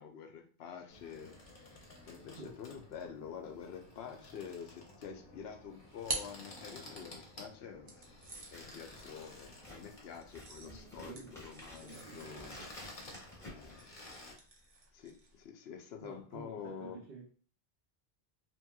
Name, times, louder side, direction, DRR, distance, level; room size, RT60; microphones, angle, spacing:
voice 1, 0.0-1.4 2.1-8.1 8.5-12.5 13.4-13.9 14.9-17.0, left 7 dB, 80° left, 4 dB, 0.8 m, -47 dB
sound 1, 0.9-14.3, left 2 dB, 55° left, 0.9 m, -54 dB
sound 2, 5.4-7.2 7.9-15.5, right 2 dB, 45° right, 0.6 m, -47 dB
Scissors, 8.2-14.4, left 1 dB, 5° left, 1.0 m, -54 dB
voice 2, 9.7-10.0 10.6-11.4 11.8-12.7 16.0-17.3, right 4 dB, 70° right, -2 dB, 0.9 m, -51 dB
2.9 x 2.8 x 2.2 m, 0.43 s
omnidirectional pair, 1.0 m